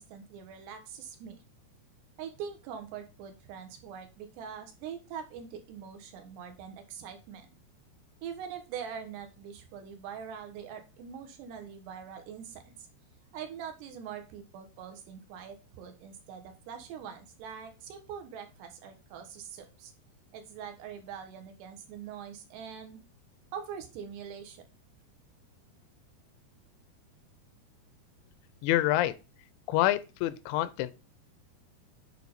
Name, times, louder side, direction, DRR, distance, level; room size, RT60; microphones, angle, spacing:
voice 1, 0.0-1.4 2.2-7.5 8.2-12.9 13.3-19.9 20.3-23.0 23.5-24.6, right 7 dB, 75° right, 3.3 m, -43 dB
voice 2, 28.6-29.1 29.7-30.9, left 14 dB, 90° left, 2.9 m, -27 dB
8.3 x 4.6 x 4.1 m
omnidirectional pair, 5.1 m